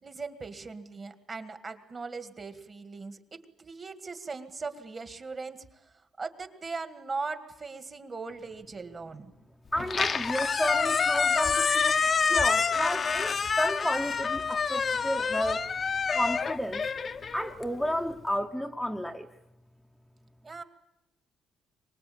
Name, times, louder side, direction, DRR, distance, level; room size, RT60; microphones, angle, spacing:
voice 1, 0.0-5.7 6.2-9.3 20.4-20.6, right 4 dB, 30° right, 9 dB, 1.9 m, -39 dB
voice 2, 9.7-12.0 12.3-15.7 16.1-16.8 17.3-19.3, equal, ahead, 2 dB, 0.9 m, -31 dB
Squeak, 9.8-18.0, left 5 dB, 35° left, 0.8 m, -27 dB
24.5 x 20.0 x 8.7 m, 0.87 s
cardioid pair, 135°, 0 cm